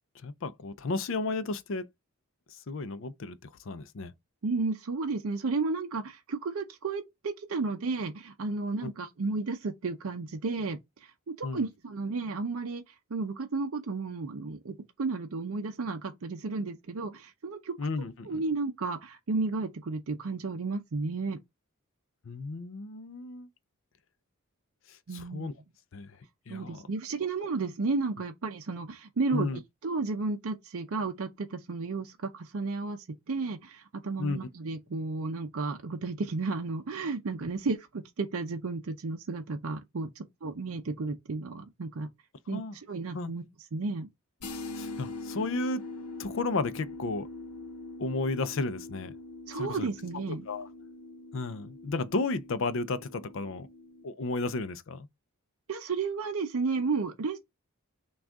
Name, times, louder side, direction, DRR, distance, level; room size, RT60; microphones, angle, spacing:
voice 1, 0.2-1.9 2.7-4.1 8.8-8.9 11.4-11.6 17.8-18.4 22.3-23.5 25.1-25.5 25.9-26.2 26.5-26.8 29.3-29.6 34.2-34.4 42.5-42.8 43.1-43.3 44.7-45.8 46.2-47.3 48.0-49.1 49.5-49.9 50.5-50.7 51.3-53.7 54.0-55.1, left 3 dB, 60° left, 0.5 m, -33 dB
voice 2, 4.4-11.1 11.4-17.7 18.3-21.4 25.1-25.5 26.5-29.5 29.8-42.1 42.5-43.4 43.7-44.1 49.5-50.5 55.7-57.4, right 3 dB, 65° right, 0.5 m, -33 dB
sound 1, 44.4-54.0, left 2 dB, 85° left, 0.8 m, -43 dB
6.1 x 2.4 x 3.5 m
head